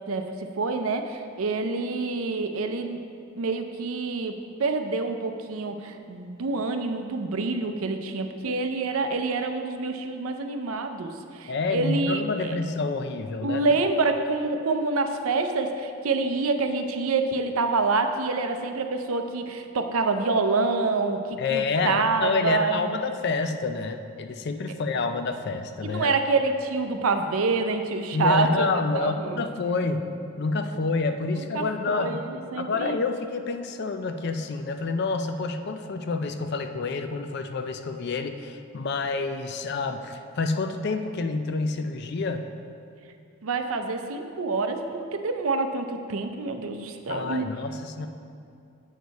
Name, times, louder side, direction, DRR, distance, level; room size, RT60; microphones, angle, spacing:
voice 1, 0.1-3.0 3.4-12.6 13.4-22.9 25.8-28.7 28.9-29.4 31.4-33.0 43.4-47.4, right 3 dB, 75° right, 7 dB, 0.5 m, -27 dB
voice 2, 11.5-13.6 21.4-26.1 28.1-30.1 30.4-32.2 32.6-42.4 47.1-48.1, left 3 dB, 50° left, 8 dB, 0.4 m, -28 dB
8.1 x 6.4 x 4.0 m, 2.4 s
head